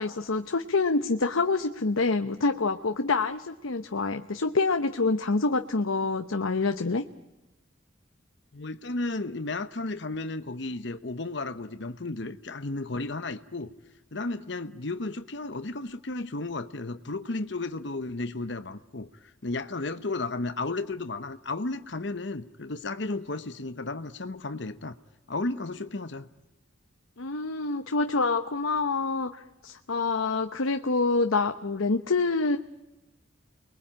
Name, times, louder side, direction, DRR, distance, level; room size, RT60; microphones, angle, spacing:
voice 1, 0.0-7.0 27.2-32.6, left 3 dB, 90° left, 0.9 m, -26 dB
voice 2, 8.5-13.7 14.1-19.1 19.4-25.0 25.3-26.3, left 2 dB, 60° left, 1.0 m, -33 dB
29.0 x 21.5 x 8.8 m
head